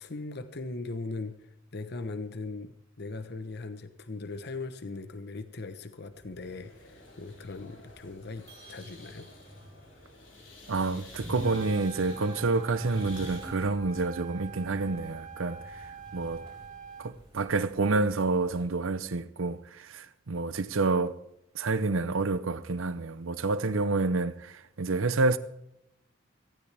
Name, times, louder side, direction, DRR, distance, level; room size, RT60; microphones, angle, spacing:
voice 1, 0.0-9.3, left 3 dB, 55° left, 1.0 m, -39 dB
sound 1, 6.1-18.7, equal, 25° right, 4.1 m, -48 dB
sound 2, 6.4-13.4, left 3 dB, 70° left, 5.2 m, -52 dB
voice 2, 10.7-16.4 17.0-21.2 21.5-25.4, right 3 dB, 80° right, 0.7 m, -28 dB
Trumpet, 11.3-17.1, right 6 dB, 40° right, 2.0 m, -45 dB
18.0 x 16.0 x 3.4 m
head